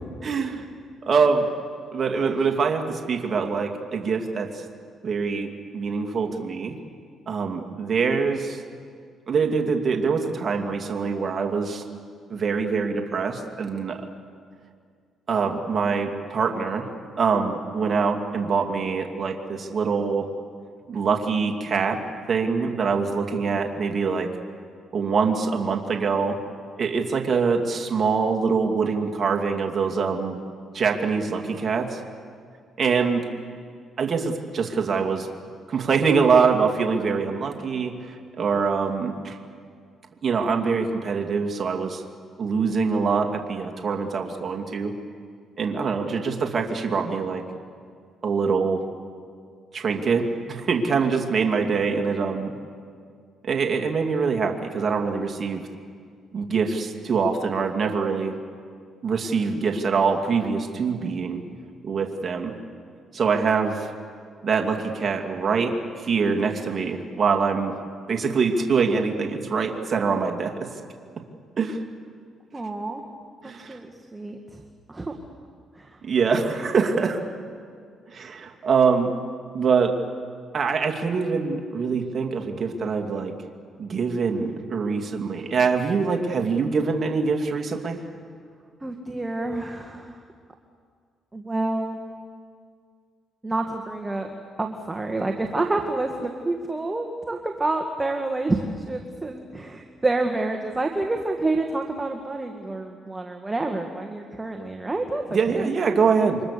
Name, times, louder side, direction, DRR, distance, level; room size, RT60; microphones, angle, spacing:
voice 1, 0.2-0.7 1.0-1.5 1.9-4.6 5.0-6.8 7.3-8.6 9.3-11.8 12.3-14.0 15.3-16.9 17.2-20.3 20.9-22.0 22.3-24.3 24.9-26.4 26.8-30.4 30.7-32.0 32.8-33.3 34.0-35.3 35.7-39.4 40.2-42.0 42.4-44.9 45.6-47.4 48.2-48.8 49.7-52.5 53.4-55.6 56.3-58.4 59.0-61.4 61.8-62.5 63.1-63.9 64.4-67.7 68.1-70.7 71.6-71.8 73.4-73.8 76.0-77.2 78.1-79.1 79.5-79.9 80.5-83.3 83.8-88.0 105.3-106.4, right 5 dB, 45° right, 3 dB, 2.7 m, -24 dB
voice 2, 72.5-73.0 73.4-74.6 74.9-75.1 75.8-76.0 88.8-90.2 91.3-92.1 93.4-94.3 94.6-105.7, right 2 dB, 20° right, 3 dB, 1.9 m, -28 dB
28.5 x 25.0 x 6.9 m, 2.1 s
cardioid pair, 90°, 0 cm